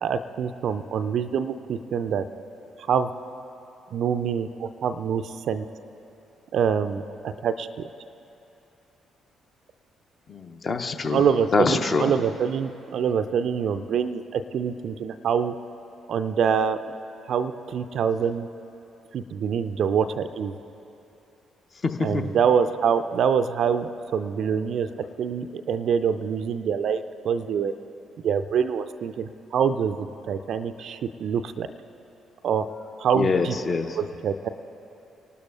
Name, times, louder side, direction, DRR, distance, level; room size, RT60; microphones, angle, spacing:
voice 1, 0.0-2.2 2.9-3.1 3.9-5.6 6.5-7.9 11.1-15.5 16.1-16.8 17.3-18.5 19.1-20.6 22.0-24.9 25.2-27.7 28.2-31.7 32.4-32.7 33.0-33.6 33.9-34.5, right 7 dB, 55° right, 11 dB, 0.4 m, -25 dB
voice 2, 10.3-11.2 11.5-12.1 21.8-22.2 33.1-33.9, left 4 dB, 40° left, 6 dB, 0.8 m, -24 dB
30.0 x 12.5 x 2.4 m, 2.8 s
figure-of-eight pair, 40°, 0 cm